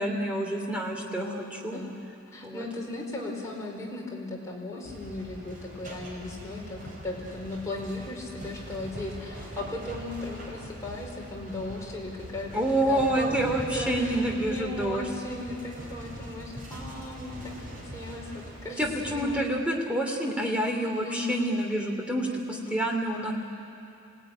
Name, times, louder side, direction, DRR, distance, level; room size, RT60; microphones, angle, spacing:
voice 1, 0.0-1.8 2.4-2.7 12.5-15.0 18.8-22.3 22.7-23.3, right 1 dB, 5° right, 1 dB, 2.7 m, -28 dB
voice 2, 1.0-2.0 2.3-17.5 17.9-19.4 20.7-21.4 22.3-22.8, left 1 dB, 15° left, -3 dB, 4.5 m, -36 dB
sound 1, 4.8-19.4, equal, 40° right, 4.8 m, -42 dB
26.5 x 18.0 x 10.0 m, 2.6 s
head